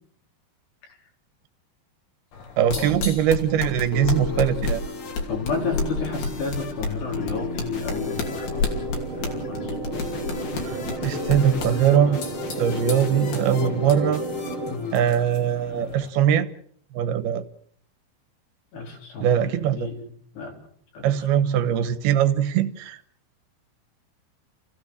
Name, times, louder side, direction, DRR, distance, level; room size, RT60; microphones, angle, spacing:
sound 1, 2.3-16.1, left 3 dB, 70° left, 4.7 m, -32 dB
voice 1, 2.6-4.8 10.6-12.2 12.6-14.2 14.9-16.5 16.9-17.4 19.2-19.9 21.0-23.0, right 9 dB, 80° right, 12 dB, 3.0 m, -21 dB
sound 2, 3.5-15.9, left 3 dB, 45° left, 1.9 m, -36 dB
voice 2, 5.3-8.6 9.1-10.1 14.7-15.0 18.7-20.1 20.3-20.5 20.9-21.1 21.4-21.5, left 4 dB, 85° left, 0 dB, 6.6 m, -32 dB
sound 3, 7.9-14.8, right 1 dB, 45° right, 2.1 m, -32 dB
29.5 x 16.0 x 6.5 m, 0.63 s
omnidirectional pair, 4.5 m